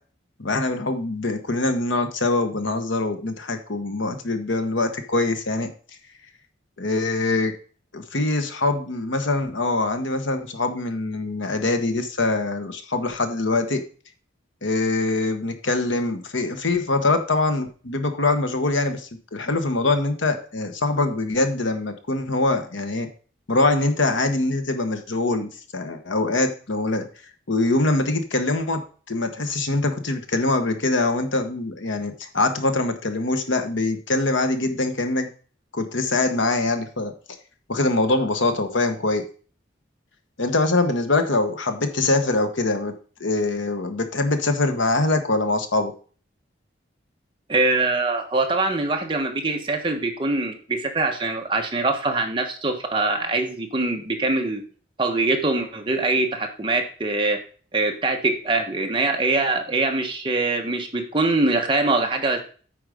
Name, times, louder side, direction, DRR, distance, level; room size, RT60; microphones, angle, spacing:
voice 1, 0.4-5.7 6.8-7.5 7.9-13.8 14.6-23.1 23.5-27.1 27.5-28.8 29.1-35.3 35.7-37.1 37.7-39.2 40.4-42.9 43.2-45.9, left 2 dB, 80° left, 7 dB, 1.1 m, -23 dB
voice 2, 47.5-54.6 55.0-57.4 57.7-62.4, right 2 dB, 25° right, 3 dB, 1.2 m, -23 dB
8.8 x 4.8 x 5.0 m, 0.40 s
head